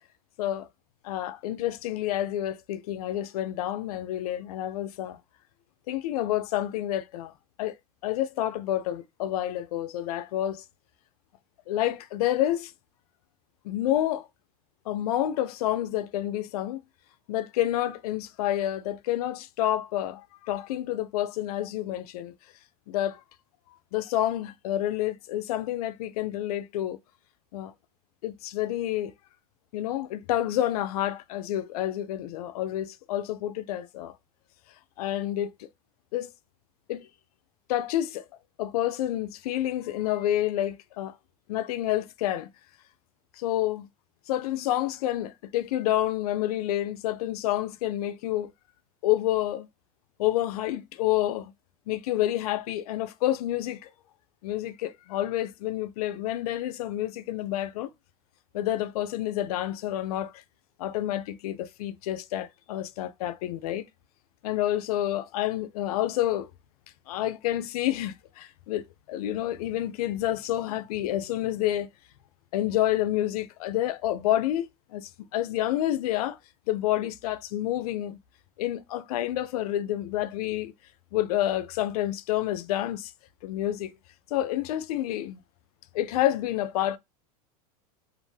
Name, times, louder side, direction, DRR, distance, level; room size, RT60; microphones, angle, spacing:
voice 1, 1.0-5.2 5.9-7.3 7.6-7.7 8.0-10.6 11.7-12.7 13.6-14.3 14.9-16.8 17.3-22.3 22.9-23.2 23.9-27.0 27.5-27.7 28.2-29.1 29.7-34.1 35.0-35.7 36.1-36.3 36.9-37.1 37.7-38.2 38.6-41.1 41.5-42.5 43.4-43.9 44.3-48.5 49.0-49.7 50.2-51.5 51.9-53.9 54.4-57.9 58.5-60.3 60.8-63.8 64.4-66.5 67.1-71.9 72.5-76.4 76.7-78.2 78.6-80.7 81.1-83.1 83.4-83.9 84.3-85.4 85.9-87.0, left 13 dB, 75° left, 0.4 m, -29 dB
2.5 x 2.1 x 3.2 m
supercardioid pair, 130°, 19 cm